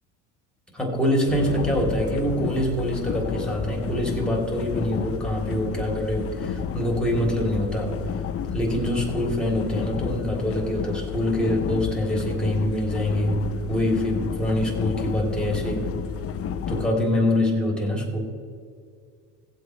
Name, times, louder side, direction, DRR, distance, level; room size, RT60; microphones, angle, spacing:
voice 1, 0.7-8.0 8.5-13.4 13.7-15.9 16.7-18.2, left 1 dB, ahead, -2 dB, 3.1 m, -25 dB
sound 1, 1.3-16.9, left 7 dB, 30° left, 0.6 m, -31 dB
18.5 x 7.8 x 3.3 m, 2.2 s
supercardioid pair, 110°, 46 cm